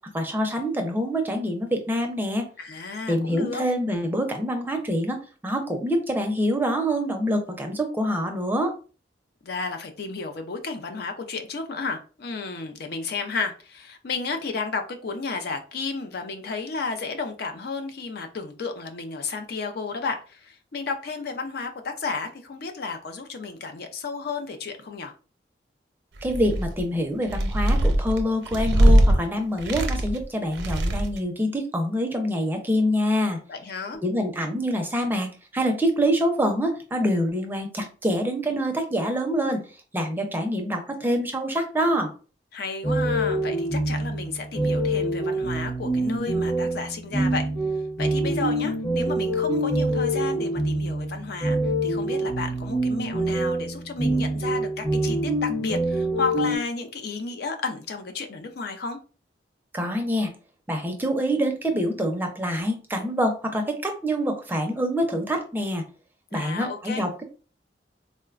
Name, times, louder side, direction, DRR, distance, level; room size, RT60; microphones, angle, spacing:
voice 1, 0.1-2.5 3.1-8.7 26.2-33.4 34.0-39.6 39.9-42.1 59.7-60.3 60.7-65.8 66.3-67.2, equal, 10° right, 0.5 m, -25 dB
voice 2, 2.6-3.6 9.4-25.1 33.5-34.0 42.5-47.4 48.0-59.0 66.3-67.1, left 4 dB, 60° left, 0.5 m, -32 dB
sound 1, 26.2-26.8 27.2-29.1 29.6-30.2 30.5-31.2, right 1 dB, 85° right, 0.6 m, -20 dB
sound 2, 42.8-56.6, right 1 dB, 25° left, 0.8 m, -25 dB
3.8 x 2.1 x 2.4 m
head